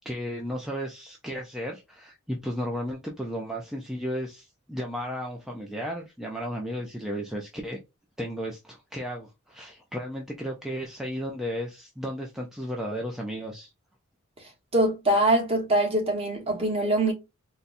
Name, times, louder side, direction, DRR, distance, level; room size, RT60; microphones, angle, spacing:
voice 1, 0.0-7.8 8.2-13.7, equal, ahead, 0.4 m, -34 dB
voice 2, 14.7-17.1, right 1 dB, 30° right, 1.2 m, -23 dB
4.0 x 2.2 x 2.5 m
head